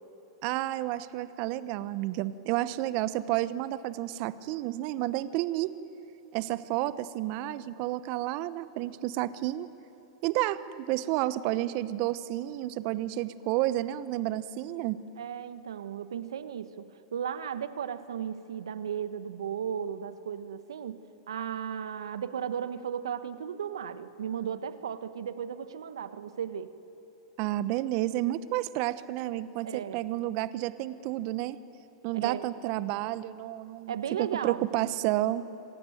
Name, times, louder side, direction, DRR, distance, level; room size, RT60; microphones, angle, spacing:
voice 1, 0.4-5.7 6.3-9.7 10.2-15.0 27.4-31.6 32.0-35.4, right 15 dB, 50° right, 15 dB, 1.0 m, -31 dB
voice 2, 15.2-21.0 21.3-26.7 29.6-30.0 32.1-32.4 33.9-34.6, right 8 dB, 80° right, 12 dB, 1.2 m, -35 dB
26.5 x 16.0 x 9.3 m, 3.0 s
hypercardioid pair, 105°, 2 cm